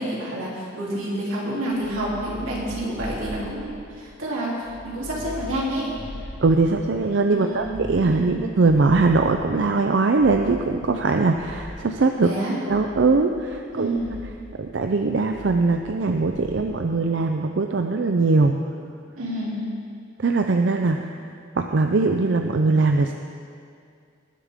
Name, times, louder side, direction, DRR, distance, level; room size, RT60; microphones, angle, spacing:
voice 1, 0.0-6.0 7.3-8.4 12.2-12.6 13.7-14.1 19.2-19.6, right 1 dB, 85° right, -5 dB, 3.0 m, -29 dB
sound 1, 1.7-4.1 4.6-7.1 7.5-9.7 10.2-12.1 12.7-13.7 13.9-14.4 15.3-16.0 16.3-16.8, left 1 dB, 70° left, 1.2 m, -40 dB
voice 2, 6.4-12.3 12.7-14.0 14.6-18.6 20.2-21.0 21.6-23.1, right 3 dB, 60° right, 5 dB, 0.5 m, -21 dB
19.5 x 8.4 x 3.6 m, 2.3 s
head